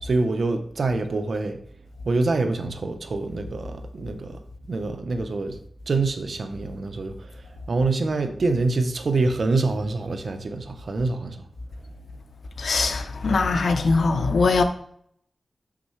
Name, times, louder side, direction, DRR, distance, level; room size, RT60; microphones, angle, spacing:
voice 1, 0.0-1.6 2.0-4.4 4.7-5.6 5.9-7.3 7.7-11.4, right 3 dB, 70° right, 0.8 m, -25 dB
voice 2, 12.6-14.6, left 3 dB, 80° left, 0.6 m, -21 dB
6.3 x 6.0 x 3.2 m
wide cardioid pair, 75°, 0 cm